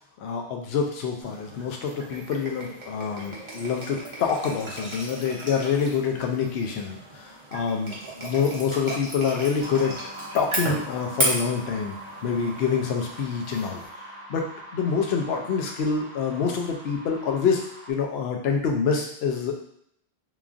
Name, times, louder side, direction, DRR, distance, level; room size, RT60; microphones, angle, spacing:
voice 1, 0.2-9.9 10.3-12.0 12.2-19.6, left 6 dB, 70° left, 2 dB, 0.8 m, -26 dB
sound 1, 1.2-13.9, right 1 dB, 30° right, 0.7 m, -35 dB
sound 2, 9.6-17.9, right 1 dB, 65° right, 0.9 m, -42 dB
3.0 x 2.4 x 2.4 m, 0.70 s
omnidirectional pair, 1.1 m